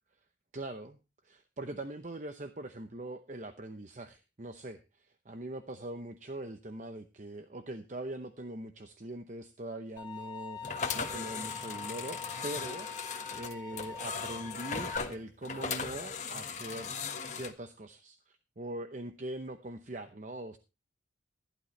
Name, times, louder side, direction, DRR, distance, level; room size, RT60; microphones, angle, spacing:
voice 1, 0.5-1.0 1.2-16.9 17.3-20.6, right 1 dB, 40° right, 8 dB, 0.8 m, -42 dB
sound 1, 10.0-15.0, left 6 dB, 20° left, 2.6 m, -44 dB
sound 2, 10.6-17.5, left 5 dB, 40° left, 1.4 m, -38 dB
15.5 x 11.5 x 3.3 m, 0.29 s
head